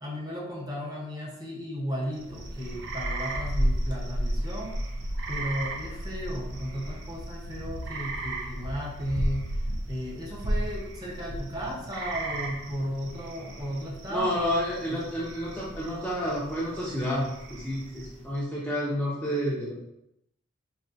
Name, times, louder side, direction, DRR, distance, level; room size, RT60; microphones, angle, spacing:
voice 1, 0.0-4.8 5.3-9.5 9.9-14.3 14.8-15.0, equal, 20° right, -4 dB, 0.9 m, -35 dB
sound 1, 2.1-18.4, right 1 dB, 60° right, 0.6 m, -34 dB
voice 2, 14.1-19.7, equal, 5° left, -7 dB, 0.6 m, -30 dB
4.3 x 2.8 x 2.6 m, 0.81 s
head